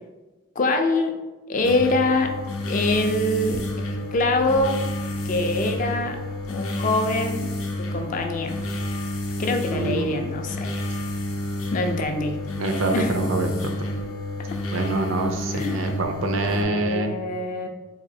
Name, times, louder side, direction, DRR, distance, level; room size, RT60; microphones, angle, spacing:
voice 1, 0.6-1.1 1.5-2.3 2.7-4.8 5.3-6.2 6.5-7.5 7.8-8.6 9.4-10.7 11.7-12.4 12.9-13.1 15.5-15.9 16.4-17.7, left 2 dB, 35° left, 4 dB, 0.3 m, -24 dB
sound 1, 1.6-16.6, left 1 dB, 90° left, 0.6 m, -30 dB
voice 2, 9.7-10.3 12.6-13.7 14.7-17.2, right 2 dB, 70° right, 5 dB, 0.4 m, -26 dB
4.0 x 2.6 x 2.7 m, 1.2 s
head